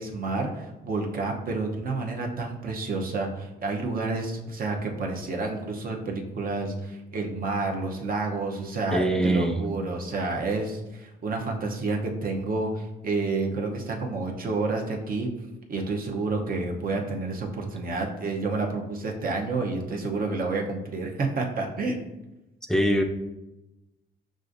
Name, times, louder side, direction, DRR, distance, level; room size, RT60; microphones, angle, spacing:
voice 1, 0.0-15.3 15.7-22.0, right 3 dB, 45° right, 1 dB, 0.8 m, -29 dB
voice 2, 8.9-9.6 22.7-23.0, right 1 dB, 5° left, 3 dB, 0.5 m, -23 dB
6.2 x 2.5 x 2.6 m, 1.0 s
cardioid pair, 90°, 20 cm